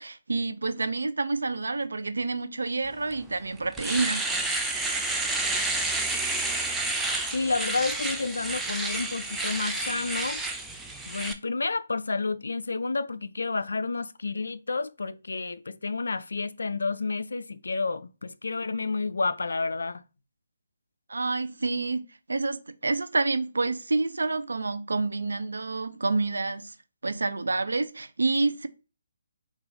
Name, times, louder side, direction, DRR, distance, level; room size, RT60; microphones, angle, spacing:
voice 1, 0.0-4.2 21.1-26.7 27.0-28.7, right 3 dB, 80° right, 0.4 m, -28 dB
Domestic sounds home sounds, 3.1-3.2 3.6-11.3, right 2 dB, 5° right, 0.4 m, -30 dB
voice 2, 7.3-10.4 11.1-20.0, left 3 dB, 75° left, 0.3 m, -30 dB
4.1 x 2.4 x 3.9 m
figure-of-eight pair, 145°, 0 cm